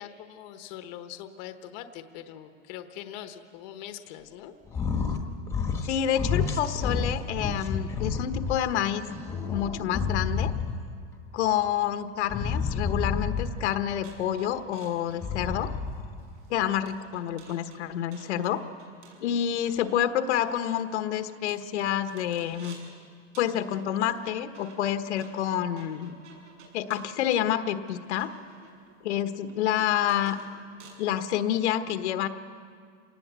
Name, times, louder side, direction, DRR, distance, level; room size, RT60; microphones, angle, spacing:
voice 1, 0.0-4.5, left 11 dB, 35° left, 8 dB, 1.1 m, -42 dB
sound 1, 4.7-5.2 5.5-5.9 6.2-8.5 9.0-10.9 12.3-13.7 15.1-16.2, left 5 dB, 10° left, 1.2 m, -29 dB
voice 2, 5.8-9.0 9.5-10.5 11.3-15.7 16.5-18.6 19.2-22.8 23.4-26.1 26.7-28.3 29.0-30.4 31.0-32.3, left 10 dB, 70° left, 9 dB, 1.3 m, -28 dB
sound 2, 14.0-23.0 23.3-31.1, right 4 dB, 85° right, 7.3 m, -53 dB
27.5 x 19.0 x 8.2 m, 2.1 s
supercardioid pair, 175°, 36 cm